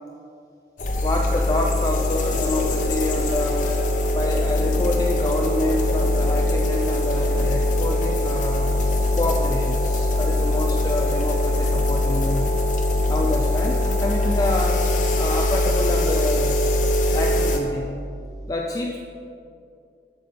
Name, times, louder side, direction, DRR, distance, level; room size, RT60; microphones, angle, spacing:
sound 1, 0.8-17.6, left 1 dB, 45° left, 0.9 m, -22 dB
voice 1, 1.0-3.8 4.1-8.7 9.2-12.6 13.1-14.9 15.1-16.6 17.1-17.9 18.5-19.0, left 1 dB, 20° left, 1 dB, 0.4 m, -27 dB
7.8 x 6.9 x 5.5 m, 2.5 s
head